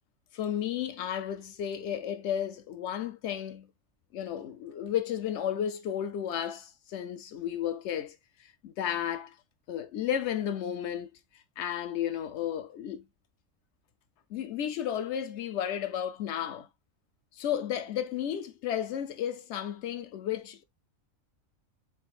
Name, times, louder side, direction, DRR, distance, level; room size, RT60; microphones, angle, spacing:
voice 1, 0.3-3.7 4.1-9.4 9.7-11.1 11.6-13.0 14.3-16.7 17.3-20.6, left 10 dB, 65° left, 0.8 m, -33 dB
7.3 x 2.7 x 2.4 m
omnidirectional pair, 1.4 m